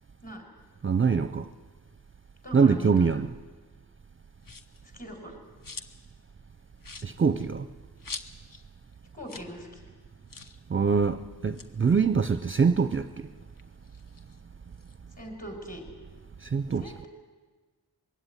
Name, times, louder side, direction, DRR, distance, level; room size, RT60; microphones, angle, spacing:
voice 1, 0.8-1.5 2.5-3.3 7.0-7.7 10.7-13.3 16.4-16.9, right 5 dB, 30° right, 12 dB, 0.6 m, -24 dB
voice 2, 2.4-3.1 4.9-5.4 9.1-9.9 15.2-15.8 16.8-17.1, equal, 20° left, 2 dB, 5.5 m, -41 dB
sound 1, 4.4-4.8 5.3-6.1 6.4-6.5 6.8-8.7 8.9-9.0 9.2-9.6 9.8-9.9 10.3-10.6 11.4-13.1 13.5-15.0, left 4 dB, 55° left, 1.2 m, -45 dB
22.0 x 16.5 x 9.9 m, 1.4 s
wide cardioid pair, 100°, 39 cm